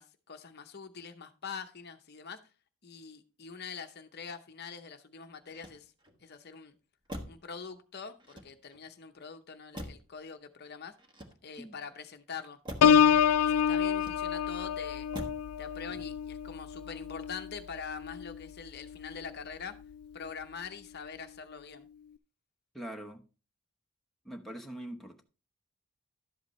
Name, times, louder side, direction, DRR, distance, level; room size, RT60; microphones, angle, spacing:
voice 1, 0.0-2.4 2.8-5.9 6.2-6.7 7.3-10.9 11.4-12.6 13.1-15.1 15.6-19.8 20.1-21.9, left 6 dB, 45° left, 0.7 m, -44 dB
Motor vehicle (road), 5.4-6.2 7.1-7.5 8.2-8.9 9.7-10.2 11.0-11.7 12.6-13.0 13.9-14.5 15.1-15.5 15.9-16.3, equal, 20° right, 1.2 m, -45 dB
Piano, 12.8-18.4 18.9-19.2, left 7 dB, 85° left, 0.4 m, -27 dB
voice 2, 22.7-23.2 24.2-25.2, right 1 dB, ahead, 0.9 m, -43 dB
12.0 x 8.0 x 3.1 m
head